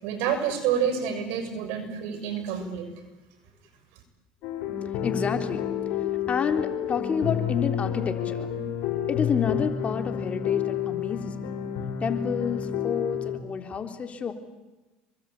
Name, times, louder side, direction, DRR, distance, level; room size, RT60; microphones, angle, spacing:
voice 1, 0.0-2.9, right 8 dB, 70° right, 8 dB, 6.9 m, -28 dB
sound 1, 4.4-13.4, left 9 dB, 65° left, 5.7 m, -30 dB
voice 2, 4.7-8.5 9.1-11.6 12.0-14.3, left 6 dB, 35° left, 6 dB, 3.6 m, -30 dB
27.5 x 24.0 x 8.5 m, 1.1 s
hypercardioid pair, 85°, 4 cm